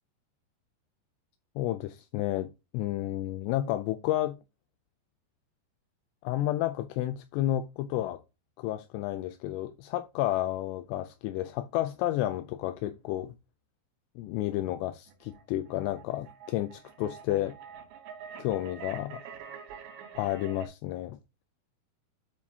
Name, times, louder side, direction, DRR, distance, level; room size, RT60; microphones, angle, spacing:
voice 1, 1.6-4.4 6.2-8.2 8.6-13.3 14.2-17.5 18.4-19.2 20.1-21.2, left 14 dB, 85° left, 2.6 m, -31 dB
sound 1, 15.1-20.7, right 7 dB, 85° right, 3.5 m, -46 dB
12.0 x 4.5 x 2.8 m
omnidirectional pair, 5.0 m